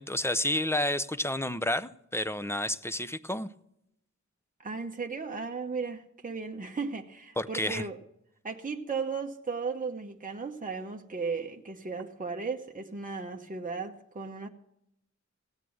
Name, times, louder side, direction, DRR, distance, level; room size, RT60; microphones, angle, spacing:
voice 1, 0.0-3.5 7.4-7.8, left 1 dB, 10° left, 0.6 m, -30 dB
voice 2, 4.6-8.0 8.4-14.5, right 4 dB, 25° right, 0.9 m, -35 dB
16.5 x 9.1 x 6.3 m
wide cardioid pair, 85°, 30 cm